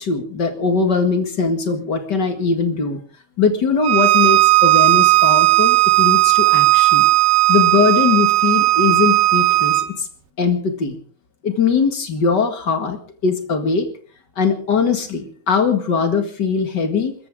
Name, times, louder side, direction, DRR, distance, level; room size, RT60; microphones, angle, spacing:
voice 1, 0.0-3.0 3.4-7.0 7.5-10.1 10.4-11.0 11.4-13.0 13.2-13.9 14.3-17.1, left 5 dB, 50° left, 7 dB, 1.3 m, -20 dB
Bowed string instrument, 3.8-9.9, right 18 dB, 85° right, 3.1 m, -15 dB
27.0 x 14.5 x 3.7 m, 0.43 s
omnidirectional pair, 4.8 m